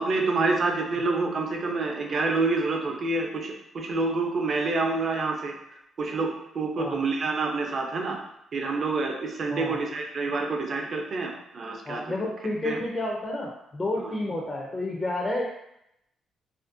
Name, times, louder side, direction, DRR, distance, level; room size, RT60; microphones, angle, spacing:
voice 1, 0.0-5.5 6.0-8.2 8.5-12.0 12.6-12.8 14.0-14.2, right 3 dB, 50° right, 2 dB, 0.4 m, -27 dB
voice 2, 9.5-9.8 11.9-15.4, left 2 dB, 30° left, -1 dB, 0.4 m, -30 dB
2.4 x 2.2 x 2.4 m, 0.81 s
cardioid pair, 90°, 0 cm